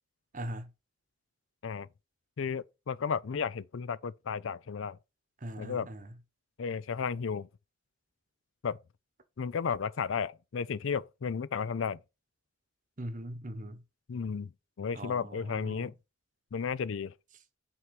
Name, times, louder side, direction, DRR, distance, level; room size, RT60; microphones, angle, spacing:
voice 1, 0.3-0.7 5.4-6.1 13.0-13.8 14.9-15.9, right 1 dB, 40° right, 1.0 m, -40 dB
voice 2, 2.4-5.0 5.6-5.9 6.6-7.5 8.6-8.8 9.4-12.0 14.1-14.5 14.8-15.9 16.5-17.1, left 6 dB, 70° left, 0.4 m, -33 dB
6.2 x 4.6 x 5.8 m
head